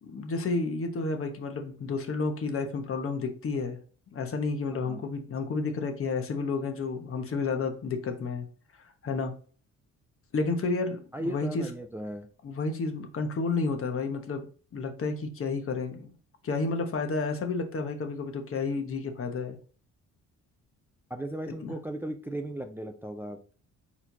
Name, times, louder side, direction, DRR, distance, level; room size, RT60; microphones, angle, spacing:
voice 1, 0.0-3.8 4.1-8.4 9.0-9.3 10.3-11.7 12.4-14.4 14.7-16.1 16.4-19.6 21.6-21.7, left 4 dB, 45° left, 5 dB, 1.1 m, -31 dB
voice 2, 11.1-12.3 21.1-23.5, right 1 dB, 5° right, 5 dB, 0.5 m, -36 dB
4.4 x 4.3 x 2.7 m, 0.41 s
cardioid pair, 90°, 30 cm